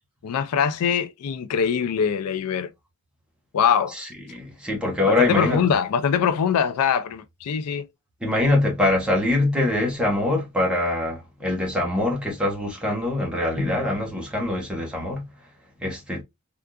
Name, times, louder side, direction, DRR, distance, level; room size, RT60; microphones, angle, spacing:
voice 1, 0.2-2.7 3.5-3.9 5.1-7.9, left 7 dB, 80° left, 0.4 m, -23 dB
voice 2, 4.0-5.6 8.2-15.3 15.8-16.2, left 2 dB, 5° right, 1.0 m, -24 dB
3.5 x 2.4 x 2.2 m
head